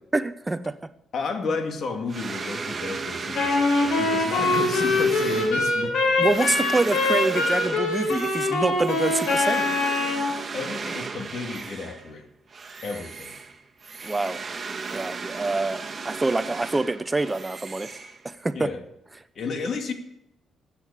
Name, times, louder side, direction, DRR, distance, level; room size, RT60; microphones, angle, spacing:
voice 1, 0.1-0.8 6.2-9.7 14.0-14.4 14.9-17.9 18.2-18.7, right 2 dB, 20° right, 13 dB, 0.6 m, -26 dB
voice 2, 1.1-5.9 10.5-12.3 12.8-13.3 18.5-18.8 19.4-19.9, left 4 dB, 55° left, 6 dB, 2.4 m, -32 dB
sound 1, 2.1-12.1 12.5-18.5, right 4 dB, 35° right, 1.6 m, -35 dB
Wind instrument woodwind instrument, 3.3-10.3, left 2 dB, 75° left, 5.1 m, -23 dB
13.5 x 8.4 x 8.3 m, 0.84 s
cardioid pair, 90°, 0 cm